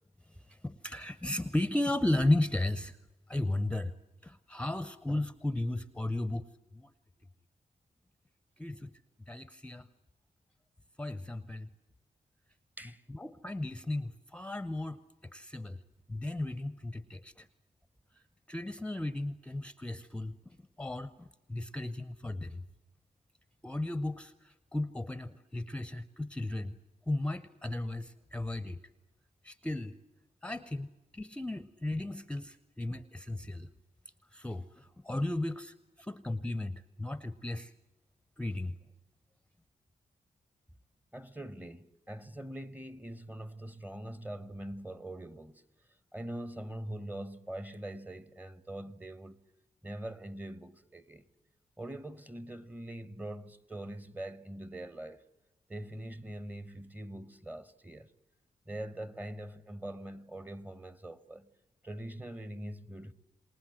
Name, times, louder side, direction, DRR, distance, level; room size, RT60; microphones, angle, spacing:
voice 1, 0.5-3.0 3.3-3.9 4.2-6.4 6.7-6.9 8.6-8.9 9.3-9.9 11.0-11.7 13.1-15.0 15.3-15.8 16.1-17.5 18.5-22.6 23.6-26.8 27.1-28.8 29.4-29.9 30.4-33.7 34.3-37.7 38.4-38.7, left 1 dB, 5° left, 0.8 m, -35 dB
voice 2, 41.1-45.6 46.1-49.4 49.8-51.2 51.8-55.2 55.7-58.1 58.7-61.5 61.8-63.1, right 1 dB, 10° right, 1.0 m, -43 dB
28.0 x 20.0 x 7.7 m
wide cardioid pair, 115°, 15 cm